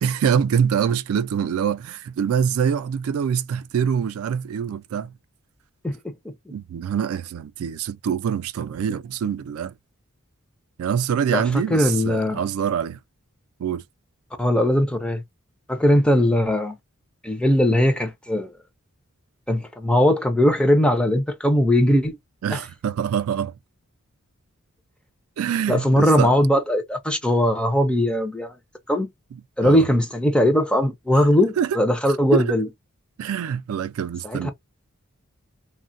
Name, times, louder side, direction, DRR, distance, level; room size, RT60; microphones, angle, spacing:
voice 1, 0.0-5.1 6.5-9.7 10.8-13.0 13.6-13.8 22.4-23.5 25.4-26.3 29.6-29.9 31.6-31.8 32.3-32.5 33.2-34.5, right 7 dB, 80° right, 0.3 m, -24 dB
voice 2, 5.8-6.1 11.3-12.4 14.4-15.2 15.7-16.8 17.2-18.5 19.5-22.2 22.5-22.6 25.7-28.5 28.9-29.1 29.6-32.7 34.2-34.5, left 1 dB, 5° left, 0.4 m, -20 dB
3.1 x 2.1 x 2.5 m
head